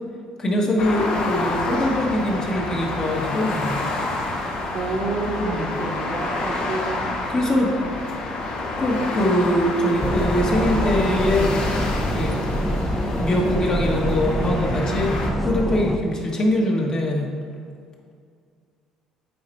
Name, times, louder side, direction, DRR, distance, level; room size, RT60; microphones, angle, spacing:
voice 1, 0.4-3.8 5.4-5.7 7.3-7.7 8.8-11.5 12.1-12.4 13.1-15.1 15.4-17.3, left 1 dB, 35° left, -1 dB, 1.5 m, -22 dB
sound 1, 0.8-15.3, left 2 dB, 55° left, 1.2 m, -28 dB
voice 2, 4.7-7.1, right 3 dB, 50° right, 2 dB, 1.1 m, -29 dB
sound 2, 10.0-16.0, equal, ahead, 0.6 m, -25 dB
8.6 x 4.1 x 4.5 m, 2.1 s
supercardioid pair, 90°, 2 cm